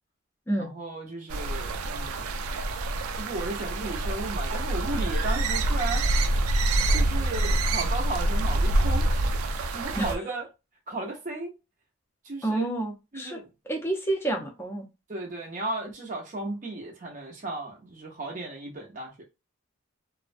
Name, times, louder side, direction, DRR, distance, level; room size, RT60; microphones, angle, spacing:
voice 1, 0.6-2.4 3.1-6.0 6.9-10.5 10.9-11.5 12.2-12.7 13.1-13.5 15.1-19.2, right 2 dB, 35° right, 0.5 m, -35 dB
sound 1, 1.3-10.2, right 1 dB, 90° right, 0.4 m, -26 dB
voice 2, 12.4-13.4 13.7-14.8, right 2 dB, 10° left, 0.5 m, -29 dB
2.4 x 2.1 x 2.5 m
head